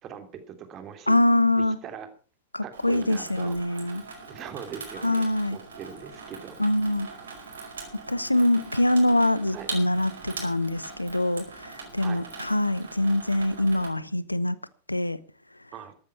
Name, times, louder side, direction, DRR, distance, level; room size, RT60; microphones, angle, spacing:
voice 1, 0.0-1.2 1.6-2.1 2.6-6.6 9.5-9.7 12.0-12.2 15.7-15.9, right 8 dB, 30° right, 8 dB, 3.0 m, -41 dB
voice 2, 1.1-1.8 2.5-4.0 5.0-5.6 6.6-7.1 8.1-14.6 14.9-15.2, left 1 dB, 85° left, 18 dB, 0.9 m, -24 dB
Water tap faucet / Sink (filling or washing), 2.7-13.9, right 4 dB, 70° right, 4.8 m, -42 dB
14.0 x 12.5 x 5.9 m, 0.39 s
figure-of-eight pair, 90°, 0 cm